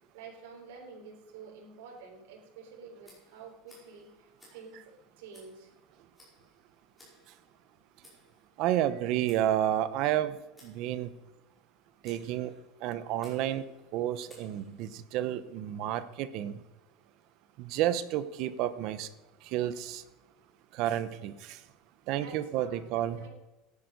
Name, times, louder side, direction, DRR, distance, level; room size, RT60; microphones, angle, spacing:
voice 1, 0.1-5.7 12.2-12.6 17.0-17.1 22.1-22.8 23.2-23.3, right 5 dB, 90° right, 1 dB, 3.7 m, -49 dB
Tick, 3.0-15.1, left 1 dB, 5° left, 5.3 m, -62 dB
voice 2, 8.6-10.4 10.6-11.1 12.0-12.5 12.8-13.6 13.9-16.6 17.6-19.1 19.4-20.0 20.7-21.6 22.1-23.2, right 12 dB, 50° right, 14 dB, 0.9 m, -31 dB
13.5 x 10.5 x 5.4 m, 1.1 s
cardioid pair, 165°, 0 cm